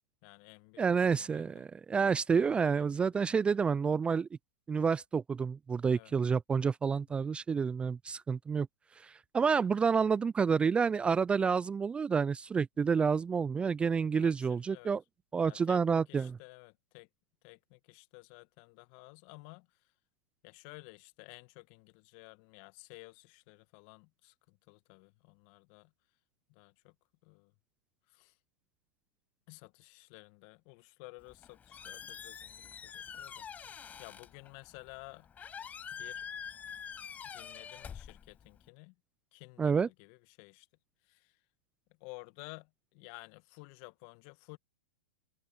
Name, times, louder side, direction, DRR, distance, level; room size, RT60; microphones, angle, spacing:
voice 1, 0.2-1.7 2.6-3.4 5.9-6.1 7.1-7.2 14.2-15.0 15.4-17.1 17.4-19.7 20.4-25.9 26.5-26.9 27.2-27.5 28.1-28.4 29.5-33.5 34.0-35.3 35.9-36.3 37.0-39.0 39.3-40.7 41.0-41.4 42.0-44.6, left 29 dB, 45° left, 1.9 m, -53 dB
voice 2, 0.8-4.3 4.7-8.7 9.0-15.0 15.3-16.4 39.6-39.9, right 6 dB, 15° right, 0.5 m, -29 dB
Squeak, 31.2-38.7, left 7 dB, 20° left, 6.0 m, -46 dB
hypercardioid pair, 105°, 7 cm